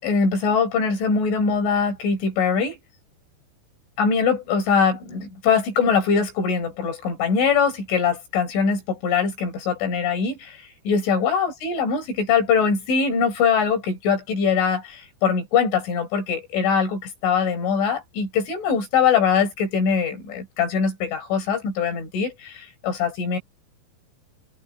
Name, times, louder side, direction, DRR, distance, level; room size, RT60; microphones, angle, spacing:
voice 1, 0.0-2.8 4.0-23.4, left 6 dB, 85° left, 8.0 m, -22 dB
omnidirectional pair, 5.4 m